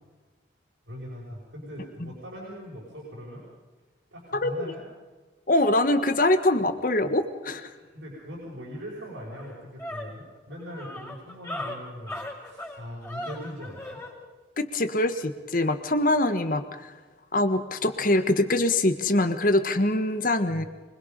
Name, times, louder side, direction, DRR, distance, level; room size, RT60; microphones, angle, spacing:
voice 1, 0.9-3.4 4.1-4.8 7.7-14.0 20.5-20.7, equal, 90° right, -5 dB, 6.0 m, -41 dB
voice 2, 5.5-7.7 14.6-16.6 17.3-20.6, left 1 dB, 45° left, 9 dB, 1.5 m, -23 dB
sound 1, 8.7-8.8 9.1-14.1, left 1 dB, 15° left, 4.5 m, -38 dB
24.5 x 21.5 x 5.3 m, 1.3 s
head